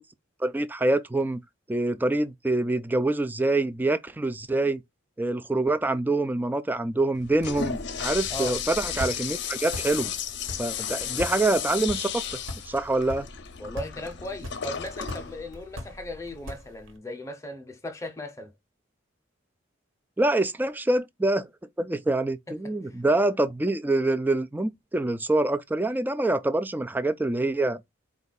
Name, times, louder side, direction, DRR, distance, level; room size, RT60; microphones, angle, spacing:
voice 1, 0.4-1.4 1.7-4.8 5.2-10.1 10.6-12.3 12.7-13.3 20.2-21.5 21.8-27.8, right 2 dB, 10° right, 0.3 m, -25 dB
Toilet flush, 7.2-16.6, left 8 dB, 60° left, 0.6 m, -34 dB
sound 1, 7.4-17.0, left 1 dB, 80° right, 1.3 m, -41 dB
voice 2, 13.6-18.5 22.8-23.0, left 1 dB, 15° left, 0.7 m, -37 dB
4.4 x 2.4 x 3.9 m
head